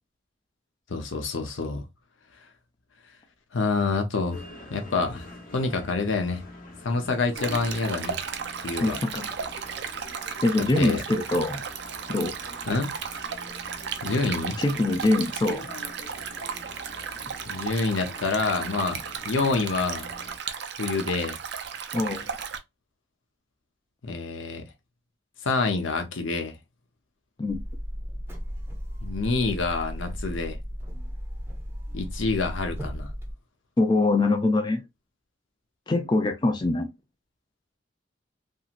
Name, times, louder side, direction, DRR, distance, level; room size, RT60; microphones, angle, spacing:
voice 1, 0.9-1.8 3.5-4.4 4.7-5.3 5.5-6.4 6.8-8.2 8.6-9.0 10.6-11.0 12.7-12.9 14.0-14.6 17.5-20.1 20.8-21.3 24.0-24.6 25.4-26.6 29.0-30.6 31.9-33.1, left 3 dB, 80° left, 0.7 m, -27 dB
sound 1, 4.3-20.4, left 2 dB, 45° left, 0.9 m, -46 dB
Stream, 7.3-22.6, right 7 dB, 60° right, 0.4 m, -35 dB
voice 2, 8.8-9.3 10.4-11.6 12.1-12.3 14.6-15.7 21.9-22.3 27.4-27.6 33.8-34.8 35.9-36.9, left 2 dB, 20° left, 0.3 m, -23 dB
sound 2, 27.5-33.3, equal, 10° right, 0.6 m, -35 dB
2.8 x 2.7 x 2.5 m
head